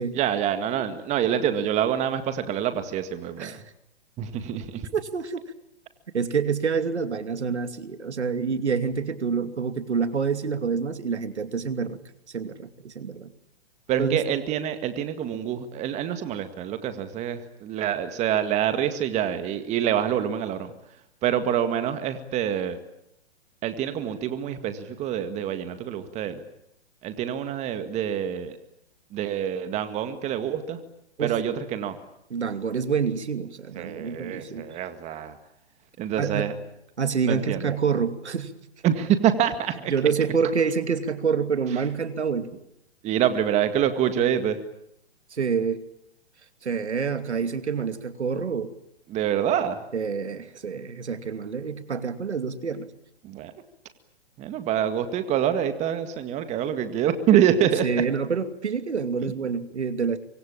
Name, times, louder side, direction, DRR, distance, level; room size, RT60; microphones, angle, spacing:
voice 1, 0.1-3.5 4.2-4.8 13.9-20.7 21.2-22.8 23.6-26.4 27.0-28.6 29.1-30.8 31.2-32.0 33.8-35.3 36.0-36.5 37.2-37.6 38.8-39.9 43.0-44.6 49.1-49.8 53.2-53.5 54.4-57.9 59.2-59.3, right 9 dB, 20° right, 10 dB, 1.9 m, -26 dB
voice 2, 4.9-5.4 6.1-12.0 12.3-13.3 14.0-14.2 31.2-31.4 32.3-34.7 36.2-36.6 37.0-38.5 39.9-42.5 45.3-45.8 46.6-48.7 49.9-52.9 57.8-60.2, right 6 dB, 85° right, 10 dB, 2.7 m, -27 dB
24.5 x 24.0 x 8.8 m, 0.78 s
hypercardioid pair, 140°, 33 cm